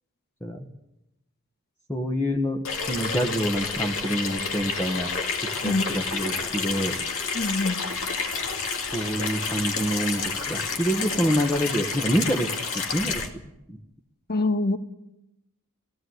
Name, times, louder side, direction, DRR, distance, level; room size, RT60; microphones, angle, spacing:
voice 1, 1.9-2.6 2.9-5.1 5.6-6.9 8.9-12.5 12.7-13.2 13.7-13.8, equal, 10° left, 1 dB, 1.3 m, -26 dB
Water tap faucet / Sink (filling or washing), 2.6-13.3, left 5 dB, 65° left, 2.3 m, -29 dB
voice 2, 7.3-7.8 14.3-14.8, left 2 dB, 45° left, 9 dB, 1.4 m, -24 dB
17.0 x 16.0 x 9.5 m, 0.88 s
head